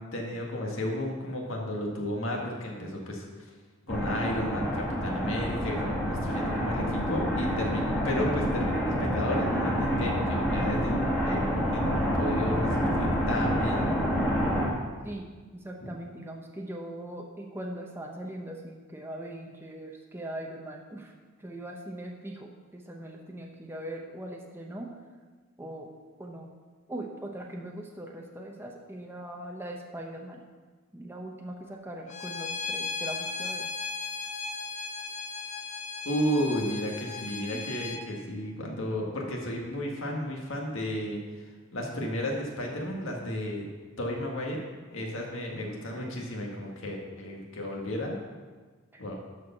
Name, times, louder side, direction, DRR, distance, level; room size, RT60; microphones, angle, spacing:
voice 1, 0.0-3.3 3.9-11.0 11.3-13.8 15.8-15.9 36.1-41.2 41.7-43.7 44.0-44.6 44.9-48.2 49.0-49.2, left 1 dB, 65° left, -1 dB, 1.8 m, -33 dB
sound 1, 3.9-14.7, equal, 10° left, 1.9 m, -28 dB
voice 2, 6.0-6.6 15.0-15.3 15.5-25.0 25.6-25.9 26.2-26.5 26.9-30.4 30.9-33.7 37.5-37.6 46.0-46.2 48.9-49.0, right 1 dB, 10° right, 1 dB, 0.8 m, -41 dB
Bowed string instrument, 32.1-38.0, left 4 dB, 35° left, 0.7 m, -36 dB
12.5 x 4.7 x 5.8 m, 1.4 s
head